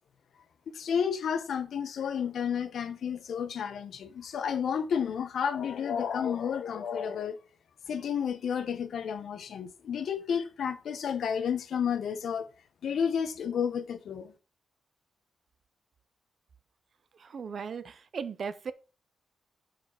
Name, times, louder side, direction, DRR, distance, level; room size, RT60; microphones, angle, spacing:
voice 1, 0.7-7.4 7.9-12.5 12.8-14.3, left 7 dB, 75° left, 0.7 m, -31 dB
voice 2, 17.1-18.7, right 6 dB, 55° right, 0.5 m, -37 dB
6.6 x 4.2 x 4.2 m
wide cardioid pair, 120°, 0 cm